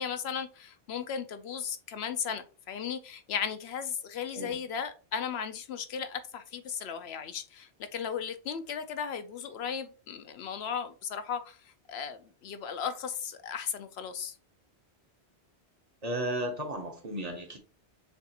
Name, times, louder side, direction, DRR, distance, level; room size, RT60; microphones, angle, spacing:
voice 1, 0.0-11.6 11.9-14.3, left 7 dB, 75° left, 0.8 m, -36 dB
voice 2, 16.0-17.6, right 1 dB, 40° right, 0.9 m, -34 dB
6.8 x 2.4 x 2.8 m
omnidirectional pair, 1.1 m